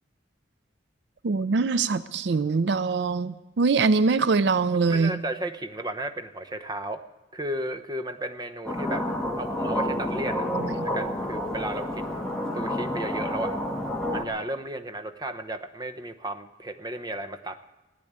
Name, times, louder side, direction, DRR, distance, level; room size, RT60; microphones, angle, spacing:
voice 1, 1.2-5.2 10.5-10.7, right 4 dB, 70° right, 15 dB, 0.4 m, -23 dB
voice 2, 4.9-7.0 7.3-9.0 9.4-12.3 12.5-13.5 14.1-17.6, right 1 dB, 20° right, 9 dB, 0.8 m, -34 dB
sound 1, 8.7-14.3, left 1 dB, 5° left, 1.5 m, -29 dB
16.0 x 9.5 x 8.7 m, 1.1 s
head